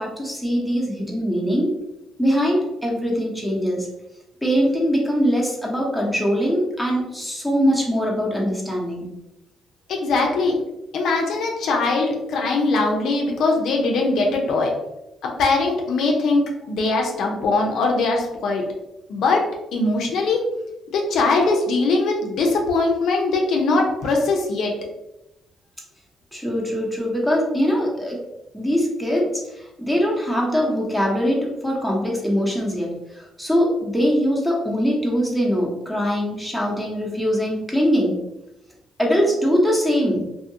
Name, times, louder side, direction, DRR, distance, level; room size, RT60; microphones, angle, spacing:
voice 1, 0.0-1.7 2.2-3.9 4.4-9.1 26.3-28.2 28.5-38.2 39.0-40.2, equal, ahead, -3 dB, 0.9 m, -22 dB
voice 2, 9.9-10.6 10.9-14.7 15.2-18.7 19.1-19.4 19.7-20.4 20.9-24.7, left 3 dB, 75° left, 1 dB, 0.5 m, -21 dB
2.7 x 2.5 x 2.7 m, 0.92 s
cardioid pair, 90°, 0 cm